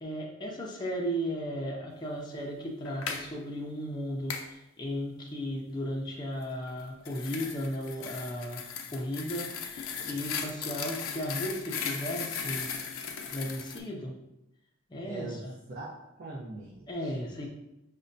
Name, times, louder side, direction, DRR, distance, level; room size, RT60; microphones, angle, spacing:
voice 1, 0.0-8.6 8.9-12.7 13.3-14.2 14.9-15.6 16.9-17.5, equal, 20° left, -2 dB, 0.4 m, -35 dB
sound 1, 2.9-3.3 4.3-4.5 6.7-13.8, left 6 dB, 85° left, 0.4 m, -37 dB
voice 2, 15.0-15.4 15.7-17.5, right 2 dB, 50° right, -5 dB, 0.6 m, -42 dB
5.1 x 2.1 x 2.6 m, 0.86 s
head